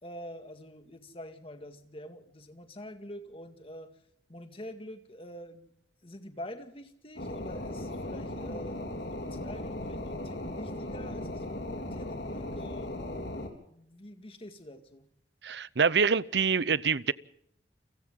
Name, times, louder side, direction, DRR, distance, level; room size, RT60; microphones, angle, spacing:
voice 1, 0.0-3.9 4.3-5.7 6.0-13.3 13.6-15.1, equal, 30° left, 2.0 m, -46 dB
sound 1, 7.2-13.5, left 1 dB, 75° left, 3.9 m, -37 dB
voice 2, 15.4-17.1, right 5 dB, 75° right, 0.7 m, -26 dB
30.0 x 23.5 x 3.8 m
head